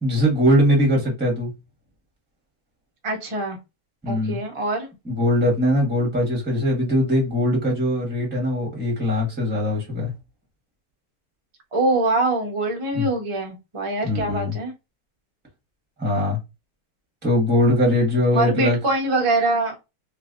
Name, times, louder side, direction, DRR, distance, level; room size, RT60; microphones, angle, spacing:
voice 1, 0.0-1.5 4.0-4.4 5.0-10.1 12.9-13.0 14.0-14.5 16.0-16.4 17.2-18.8, left 1 dB, 5° right, 0.9 m, -21 dB
voice 2, 3.0-3.6 4.1-4.9 11.7-14.7 18.3-19.7, right 2 dB, 40° right, 0.4 m, -23 dB
3.2 x 2.9 x 2.4 m
omnidirectional pair, 1.9 m